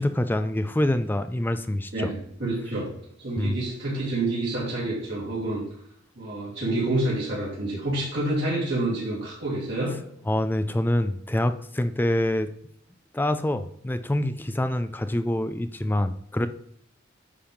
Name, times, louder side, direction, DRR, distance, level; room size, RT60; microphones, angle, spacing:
voice 1, 0.0-2.1 3.4-3.6 10.3-12.5 13.1-16.5, left 1 dB, 10° left, 11 dB, 0.3 m, -26 dB
voice 2, 1.9-2.9 3.2-5.6 6.1-10.0, right 2 dB, 65° right, -7 dB, 3.1 m, -28 dB
10.0 x 3.4 x 5.6 m, 0.69 s
head